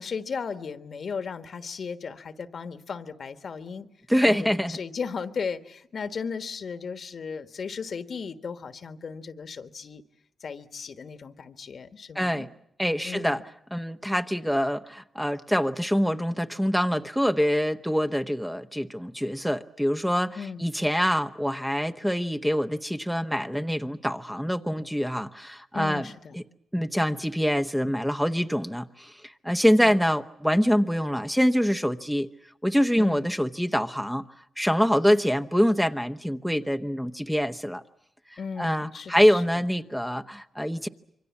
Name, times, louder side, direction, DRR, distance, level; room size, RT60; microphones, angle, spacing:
voice 1, 0.0-3.9 4.2-10.0 10.4-12.5 13.0-13.4 20.3-20.6 25.7-26.4 29.8-30.0 33.0-33.3 38.4-39.7, left 5 dB, 60° left, 1.5 m, -36 dB
voice 2, 4.1-4.8 12.1-12.5 12.8-13.4 13.7-26.1 26.7-32.3 32.6-34.2 34.6-37.8 38.6-40.9, equal, ahead, 1.0 m, -25 dB
27.0 x 24.0 x 7.3 m
cardioid pair, 80°, 0 cm